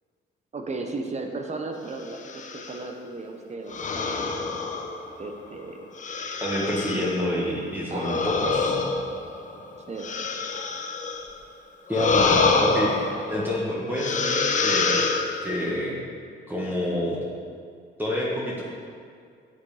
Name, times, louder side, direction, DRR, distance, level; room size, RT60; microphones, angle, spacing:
voice 1, 0.5-4.6 5.2-5.9 6.6-6.7 7.9-8.3 9.9-10.1, right 3 dB, 35° right, 4 dB, 1.2 m, -35 dB
sound 1, 2.1-2.8 3.7-5.3 6.0-7.2 7.9-11.3 11.9-13.6 14.0-15.7, left 4 dB, 40° left, 1.0 m, -26 dB
voice 2, 6.4-8.8 11.9-13.0 13.3-15.2 15.4-16.0 16.5-17.2 18.0-18.6, left 1 dB, 10° right, -5 dB, 1.8 m, -28 dB
8.5 x 8.2 x 5.1 m, 2.2 s
cardioid pair, 90°, 20 cm